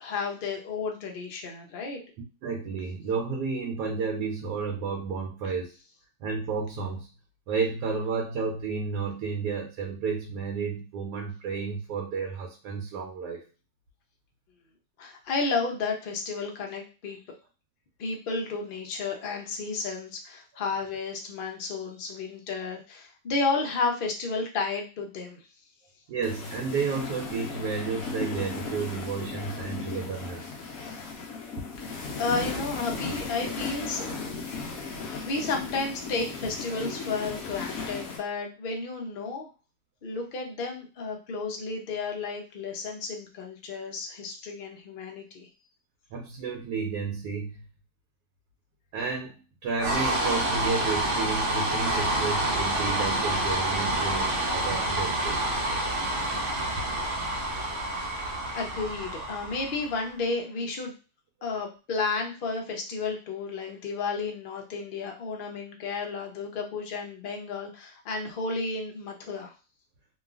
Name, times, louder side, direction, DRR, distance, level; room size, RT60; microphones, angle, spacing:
voice 1, 0.0-2.0 15.0-17.2 18.0-25.4 31.8-34.1 34.4-34.5 35.1-39.5 40.0-45.5 58.5-60.9 61.4-69.5, left 4 dB, 85° left, 1 dB, 0.4 m, -32 dB
voice 2, 2.4-5.7 6.2-7.1 7.5-13.4 26.1-30.5 46.1-47.6 48.9-55.5, right 5 dB, 85° right, 0 dB, 1.2 m, -31 dB
sound 1, 26.2-38.2, left 4 dB, 65° left, 1.0 m, -36 dB
sound 2, 49.8-60.1, right 1 dB, 65° right, 0.7 m, -28 dB
3.0 x 2.3 x 2.3 m, 0.33 s
omnidirectional pair, 1.7 m